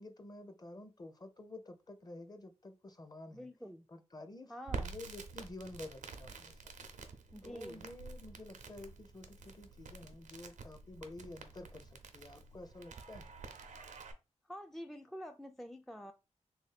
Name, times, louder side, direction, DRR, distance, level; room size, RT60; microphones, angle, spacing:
voice 1, 0.0-3.5 3.9-4.5 4.8-6.6 7.4-13.3, left 2 dB, 30° left, 0.7 m, -50 dB
voice 2, 3.3-3.9 4.5-5.0 7.3-7.9 14.4-16.1, equal, ahead, 0.3 m, -47 dB
Crackle, 4.7-14.1, right 4 dB, 90° right, 0.6 m, -48 dB
3.1 x 2.7 x 4.0 m
cardioid pair, 65°, 12 cm